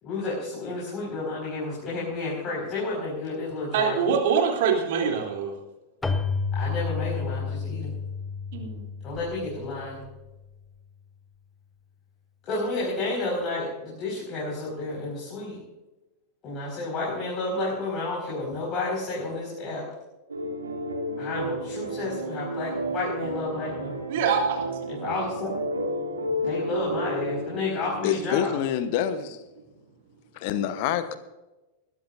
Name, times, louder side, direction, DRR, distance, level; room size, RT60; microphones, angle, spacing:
voice 1, 0.0-4.0 6.5-8.0 9.0-10.0 12.5-15.6 16.4-19.9 21.2-24.1 24.9-25.5 26.4-28.6, left 2 dB, 30° left, -4 dB, 5.2 m, -31 dB
voice 2, 3.7-5.5 8.5-8.8 24.1-24.6, right 6 dB, 50° right, 1 dB, 3.1 m, -24 dB
Keyboard (musical), 6.0-10.5, left 5 dB, 10° left, 1.1 m, -31 dB
sound 1, 20.3-29.0, equal, 75° right, 1.9 m, -32 dB
voice 3, 28.0-29.4 30.3-31.2, left 9 dB, 50° left, 12 dB, 1.0 m, -27 dB
21.0 x 13.5 x 2.6 m, 1.1 s
figure-of-eight pair, 90°, 0 cm